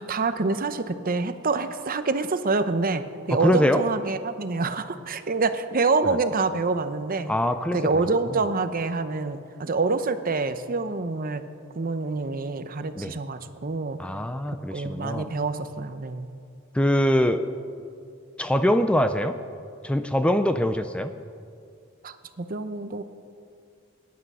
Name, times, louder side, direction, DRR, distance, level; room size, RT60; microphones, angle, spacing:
voice 1, 0.0-7.3 7.7-11.4 11.7-14.0 14.7-16.3 22.0-23.0, right 3 dB, 45° right, 10 dB, 0.7 m, -26 dB
voice 2, 3.3-3.8 6.0-6.2 7.3-8.0 13.0-13.2 14.0-15.3 16.7-17.5 18.4-19.4 19.8-21.1, left 1 dB, 5° left, 9 dB, 0.4 m, -23 dB
21.0 x 10.5 x 5.5 m, 2.4 s
head